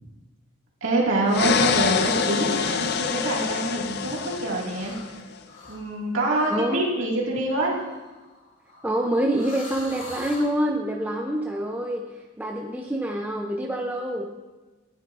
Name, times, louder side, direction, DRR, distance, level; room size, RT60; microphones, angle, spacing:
voice 1, 0.8-5.2 5.7-7.7, right 2 dB, 75° right, -3 dB, 2.0 m, -25 dB
sound 1, 1.3-5.2, left 6 dB, 50° left, 0.4 m, -26 dB
sound 2, 2.6-3.0 3.3-4.4 4.7-5.0 5.4-5.9 6.3-6.6 7.5-10.6, left 2 dB, 70° left, 2.4 m, -44 dB
voice 2, 6.5-6.9 8.8-14.4, right 1 dB, 10° right, 1 dB, 0.4 m, -26 dB
9.9 x 9.8 x 2.5 m, 1.2 s
head